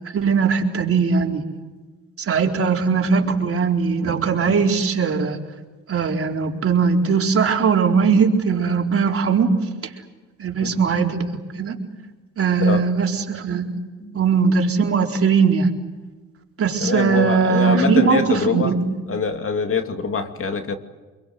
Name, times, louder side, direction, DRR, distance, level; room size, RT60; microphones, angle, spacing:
voice 1, 0.1-1.4 2.2-5.4 5.9-9.5 10.4-11.3 11.5-11.8 12.4-13.7 14.1-15.7 16.6-18.9, right 5 dB, 45° right, 1 dB, 4.2 m, -19 dB
voice 2, 16.8-18.7 19.1-20.8, left 5 dB, 45° left, 6 dB, 2.6 m, -24 dB
26.0 x 23.0 x 7.9 m, 1.3 s
cardioid pair, 90°, 30 cm